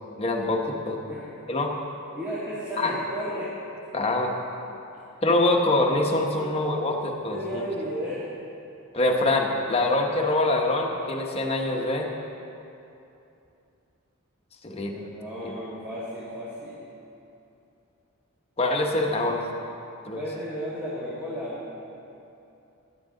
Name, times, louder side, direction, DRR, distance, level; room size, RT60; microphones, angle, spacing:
voice 1, 0.2-1.0 1.5-1.7 2.8-2.9 3.9-4.3 5.2-7.6 8.9-12.1 14.6-14.9 15.4-15.5 18.6-19.5 20.1-20.2, left 2 dB, 30° left, 1 dB, 1.1 m, -24 dB
voice 2, 2.1-3.5 6.3-6.9 7.3-8.3 14.7-16.9 20.1-21.7, equal, 10° right, -10 dB, 2.0 m, -34 dB
15.0 x 11.0 x 3.9 m, 2.7 s
head